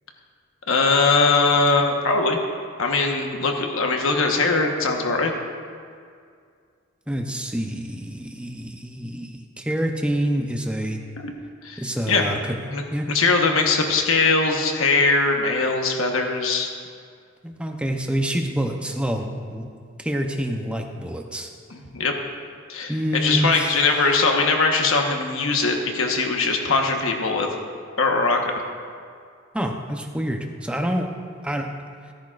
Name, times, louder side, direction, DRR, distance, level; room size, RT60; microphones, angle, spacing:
voice 1, 0.7-2.4 2.8-5.3 11.2-11.3 11.6-12.3 12.7-12.8 13.1-16.7 21.7-22.1 22.7-27.5 28.0-28.6, left 3 dB, 80° left, 2 dB, 1.1 m, -21 dB
voice 2, 7.1-9.3 9.6-11.0 11.8-12.6 12.9-13.1 17.4-19.7 20.0-21.5 22.9-23.7 29.5-31.1 31.4-31.7, equal, 5° right, 3 dB, 0.6 m, -27 dB
16.0 x 10.5 x 2.4 m, 2.2 s
head